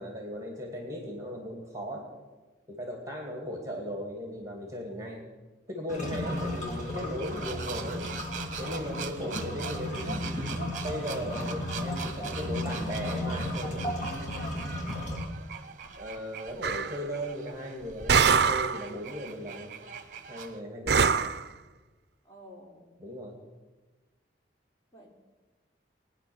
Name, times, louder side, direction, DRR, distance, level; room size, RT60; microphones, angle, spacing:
voice 1, 0.0-2.0 2.7-5.3 5.7-8.1 8.6-10.2 10.8-13.8 16.0-19.7 20.3-21.3 23.0-23.4, equal, 15° right, 1 dB, 2.3 m, -37 dB
sound 1, 5.9-15.2, left 1 dB, 40° left, 3.6 m, -35 dB
sound 2, 6.2-20.6, right 6 dB, 45° right, 1.1 m, -42 dB
voice 2, 9.3-9.6 11.3-11.8 12.4-14.9 22.2-22.9 24.9-25.1, equal, 15° left, -2 dB, 3.4 m, -47 dB
sound 3, 16.6-17.0 18.1-18.8 20.9-21.4, right 6 dB, 60° right, 0.5 m, -23 dB
19.5 x 10.0 x 7.0 m, 1.2 s
head